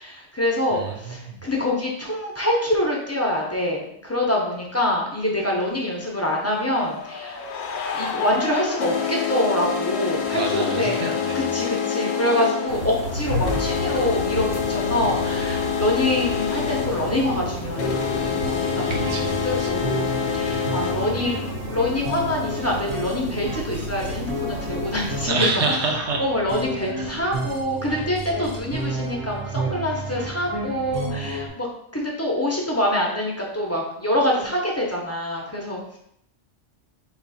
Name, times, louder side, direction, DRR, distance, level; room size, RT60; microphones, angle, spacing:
voice 1, 0.0-7.4 7.9-11.0 11.3-25.8 26.2-31.7 31.9-36.0, left 1 dB, 15° left, -2 dB, 0.6 m, -25 dB
voice 2, 0.7-1.4 10.3-11.5 18.9-19.3 19.6-19.7 25.3-26.2 27.0-27.1, right 3 dB, 70° right, 1 dB, 1.1 m, -27 dB
sound 1, 5.4-5.5 6.5-21.5, left 7 dB, 70° left, 0.8 m, -27 dB
sound 2, 12.7-25.3, left 1 dB, 55° right, 1.3 m, -32 dB
sound 3, 17.8-31.5, right 2 dB, 35° right, 0.6 m, -32 dB
4.2 x 2.8 x 4.1 m, 0.74 s
omnidirectional pair, 1.2 m